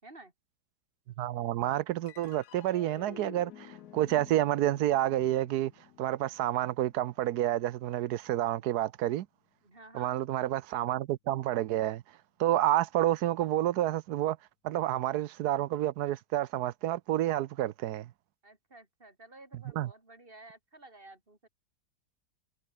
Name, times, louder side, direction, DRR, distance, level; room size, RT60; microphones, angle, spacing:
voice 1, 0.0-0.3 9.6-10.2 18.4-21.5, right 2 dB, 30° right, 6.0 m, -53 dB
voice 2, 1.2-5.7 6.0-9.3 9.9-12.0 12.4-14.4 14.6-18.1 19.8-19.9, right 13 dB, 70° right, 1.1 m, -29 dB
sound 1, 2.1-8.7, left 11 dB, 70° left, 1.3 m, -52 dB
omnidirectional pair, 1.8 m